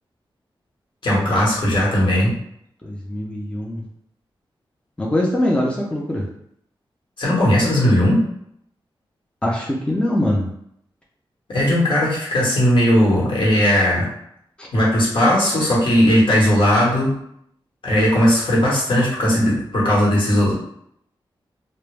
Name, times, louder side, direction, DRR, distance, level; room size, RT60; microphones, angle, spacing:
voice 1, 1.0-2.4 7.2-8.2 11.5-14.1 14.7-17.1 17.8-20.5, equal, 65° left, -5 dB, 1.0 m, -17 dB
voice 2, 2.8-3.8 5.0-6.3 9.4-10.5 14.6-14.7, left 1 dB, 10° left, -3 dB, 0.5 m, -22 dB
2.2 x 2.0 x 3.2 m, 0.70 s
wide cardioid pair, 80°, 9 cm